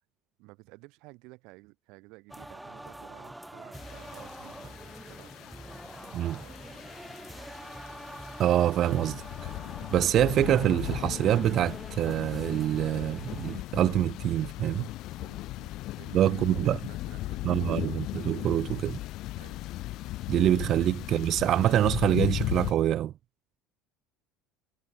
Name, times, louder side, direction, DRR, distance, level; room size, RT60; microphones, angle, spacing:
voice 1, 0.4-6.8 15.2-17.9 19.4-19.6, right 25 dB, 65° right, 1.8 m, -53 dB
sound 1, 2.3-13.6, right 1 dB, 5° right, 3.5 m, -45 dB
sound 2, 3.7-22.7, left 17 dB, 60° left, 0.7 m, -37 dB
voice 2, 8.4-9.5 9.9-14.9 16.1-16.8 17.4-19.0 20.3-23.1, right 12 dB, 50° right, 0.3 m, -25 dB
hypercardioid pair, 75°, 0 cm